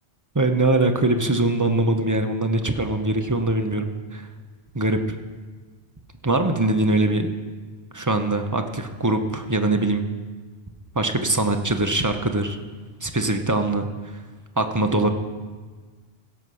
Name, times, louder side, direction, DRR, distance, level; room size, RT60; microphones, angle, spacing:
voice 1, 0.3-4.3 4.7-5.2 6.2-7.3 7.9-10.0 10.9-12.6 13.0-13.9 14.6-15.1, right 2 dB, 20° right, 6 dB, 0.6 m, -22 dB
16.0 x 5.8 x 6.3 m, 1.4 s
omnidirectional pair, 1.1 m